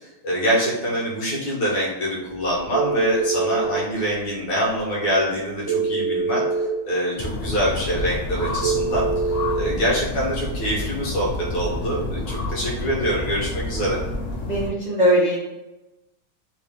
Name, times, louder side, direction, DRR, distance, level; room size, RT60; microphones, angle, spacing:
voice 1, 0.2-6.4 6.8-9.1 9.5-14.0, equal, 65° left, -5 dB, 1.8 m, -24 dB
Telephone, 2.7-3.7 5.7-6.7 8.6-9.6, right 4 dB, 10° right, 1.2 m, -24 dB
sound 1, 7.2-14.7, left 2 dB, 85° left, 0.6 m, -29 dB
voice 2, 14.4-15.4, equal, 40° right, -8 dB, 0.6 m, -20 dB
3.8 x 2.7 x 3.5 m, 1.0 s
omnidirectional pair, 2.2 m